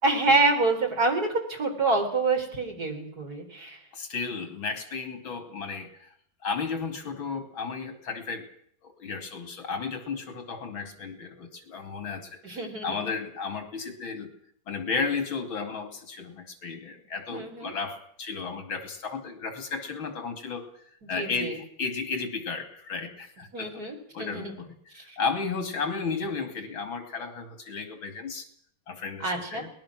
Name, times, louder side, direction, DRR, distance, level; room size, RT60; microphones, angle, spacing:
voice 1, 0.0-3.8 12.4-13.1 17.3-17.7 21.0-21.6 23.5-24.5 24.9-25.2 29.2-29.6, right 3 dB, 50° right, 2 dB, 4.6 m, -27 dB
voice 2, 3.9-6.1 6.4-8.5 8.8-12.6 12.8-14.3 14.7-20.7 21.1-23.8 24.1-24.7 25.2-28.5 28.9-29.7, left 5 dB, 75° left, 7 dB, 3.5 m, -33 dB
23.0 x 19.5 x 6.2 m, 0.64 s
omnidirectional pair, 2.2 m